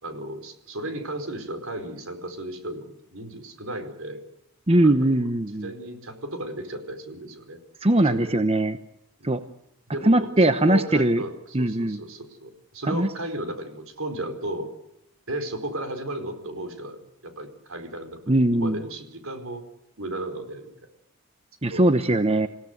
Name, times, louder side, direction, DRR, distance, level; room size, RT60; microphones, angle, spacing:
voice 1, 0.0-4.2 4.8-5.3 5.6-7.6 8.0-8.4 9.2-9.4 9.9-14.7 15.3-19.6 20.0-20.7 21.7-21.8, right 1 dB, 65° right, 8 dB, 4.6 m, -35 dB
voice 2, 4.7-5.7 7.8-8.8 9.2-9.4 10.0-11.2 11.5-12.0 12.9-13.1 18.3-18.8 21.6-22.5, right 1 dB, 25° right, 9 dB, 0.9 m, -20 dB
28.0 x 17.5 x 8.0 m, 0.84 s
head